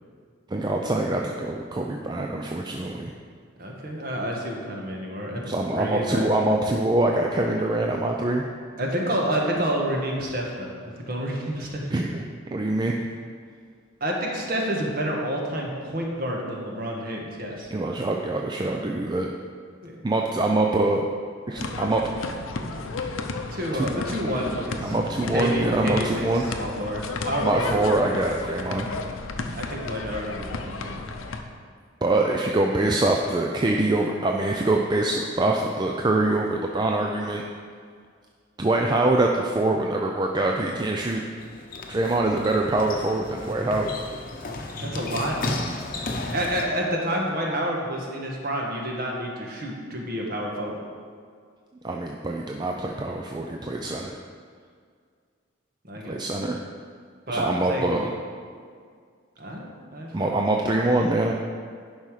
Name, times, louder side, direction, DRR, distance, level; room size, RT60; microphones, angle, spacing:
voice 1, 0.5-3.1 5.4-8.4 11.9-12.2 12.5-13.0 17.7-19.3 20.0-21.1 21.5-22.0 23.8-23.9 24.8-26.4 27.4-28.9 32.0-37.4 38.6-41.2 41.9-43.9 51.8-54.2 56.0-56.6 57.3-58.0 60.1-61.3, right 2 dB, 20° right, 1 dB, 0.4 m, -24 dB
voice 2, 3.6-5.4 5.7-6.3 8.8-11.8 14.0-17.7 19.8-19.9 23.5-24.9 25.3-27.8 29.5-31.0 44.8-45.5 46.3-50.8 55.8-56.2 57.3-58.1 59.4-60.3, equal, 45° right, -1 dB, 1.5 m, -29 dB
sound 1, 21.6-31.4, left 3 dB, 90° left, 0.7 m, -33 dB
sound 2, 41.0-46.6, left 2 dB, 45° left, 0.8 m, -34 dB
11.0 x 5.6 x 4.9 m, 2.1 s
head